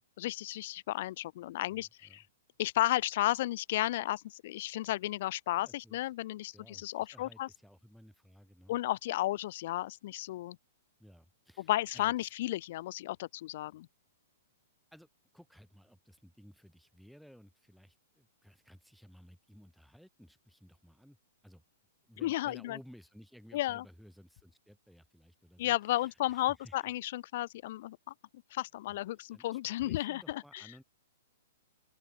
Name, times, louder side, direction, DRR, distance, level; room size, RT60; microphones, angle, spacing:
voice 1, 0.2-2.2 2.6-7.5 8.7-10.6 11.7-13.9 22.2-22.8 23.5-23.8 25.6-28.1 28.5-30.7, left 15 dB, 40° left, 0.5 m, -33 dB
voice 2, 1.7-2.2 5.6-6.0 6.5-8.8 11.0-12.3 14.9-15.1 15.3-21.2 21.4-21.6 22.0-26.9 28.9-29.0 29.3-30.8, equal, ahead, 2.0 m, -57 dB
open air
hypercardioid pair, 175°, 0 cm